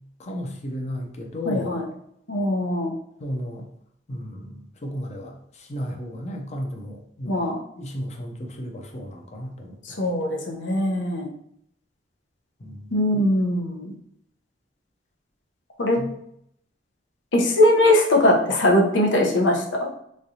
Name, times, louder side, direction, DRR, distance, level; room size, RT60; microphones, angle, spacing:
voice 1, 0.2-1.8 3.2-3.7 4.1-7.4 7.8-10.0 12.6-12.9 16.0-16.1, equal, 40° left, 3 dB, 0.6 m, -34 dB
voice 2, 1.5-1.8 2.3-2.9 7.2-7.6 9.8-11.3 12.9-13.9 15.8-16.0 17.3-19.9, left 1 dB, 85° left, 0 dB, 0.8 m, -21 dB
3.7 x 3.2 x 2.7 m, 0.71 s
head